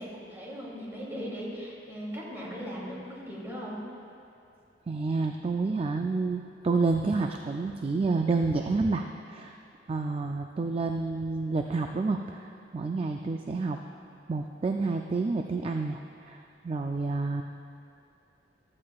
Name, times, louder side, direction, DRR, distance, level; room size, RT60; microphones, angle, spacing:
voice 1, 0.0-3.8, equal, 15° right, -6 dB, 2.7 m, -38 dB
voice 2, 4.9-9.6 9.9-13.8 14.3-17.4, right 3 dB, 35° right, 4 dB, 0.4 m, -29 dB
15.0 x 13.0 x 2.4 m, 2.6 s
head